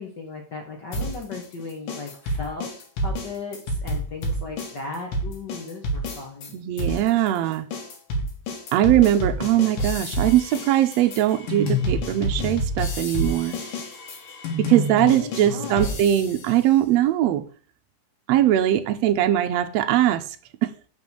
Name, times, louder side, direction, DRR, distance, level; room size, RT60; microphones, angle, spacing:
voice 1, 0.0-2.7 3.0-6.5 14.7-16.0, left 4 dB, 55° left, 1 dB, 1.2 m, -36 dB
sound 1, 0.9-6.5 6.8-16.5, equal, 80° left, 3.3 m, -29 dB
voice 2, 6.5-7.7 8.7-13.6 14.6-17.4 18.3-20.2 20.6-20.7, right 12 dB, 85° right, 6 dB, 1.5 m, -21 dB
6.0 x 5.3 x 6.9 m, 0.41 s
omnidirectional pair, 3.8 m